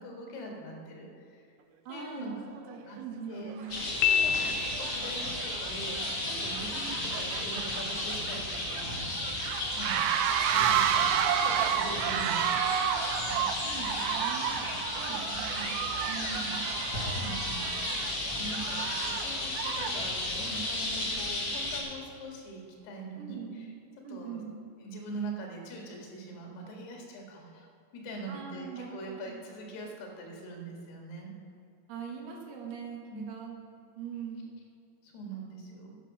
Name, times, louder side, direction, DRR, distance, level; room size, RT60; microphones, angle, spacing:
voice 1, 0.0-1.4 1.9-2.3 2.9-3.0 3.3-10.2 10.5-12.7 16.4-16.5 17.0-23.7 24.1-24.4 24.8-27.7 27.9-31.3 33.1-33.3 35.0-36.0, right 1 dB, 65° left, 1 dB, 3.8 m, -43 dB
voice 2, 1.9-3.8 13.3-14.5 14.9-15.8 16.1-16.6 23.2-23.7 24.0-24.6 28.3-29.4 31.9-33.6 34.0-34.5, right 6 dB, 70° right, 1 dB, 3.0 m, -42 dB
sound 1, 2.7-2.8 3.5-3.7 4.1-20.1, right 9 dB, 85° right, 3.0 m, -32 dB
sound 2, 3.7-21.8, left 1 dB, 45° left, 1.4 m, -34 dB
Piano, 4.0-5.1, left 8 dB, 80° left, 2.4 m, -27 dB
10.5 x 9.9 x 6.5 m, 2.5 s
omnidirectional pair, 5.3 m